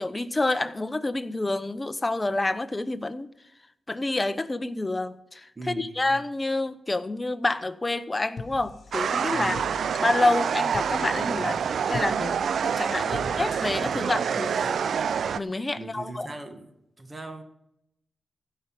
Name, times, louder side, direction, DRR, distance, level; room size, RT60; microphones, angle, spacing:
voice 1, 0.0-3.3 3.9-5.4 5.7-9.6 10.0-12.4 12.6-15.0 15.3-16.3, left 2 dB, 25° left, 13 dB, 0.8 m, -28 dB
voice 2, 5.6-6.2 9.3-9.7 13.1-13.3 15.8-16.7 17.0-17.4, right 3 dB, 30° right, 6 dB, 1.9 m, -39 dB
sound 1, 8.4-14.7, left 5 dB, 65° left, 0.5 m, -43 dB
sound 2, 8.9-15.4, right 7 dB, 75° right, 0.4 m, -27 dB
15.5 x 5.5 x 7.5 m, 0.82 s
cardioid pair, 65°, 0 cm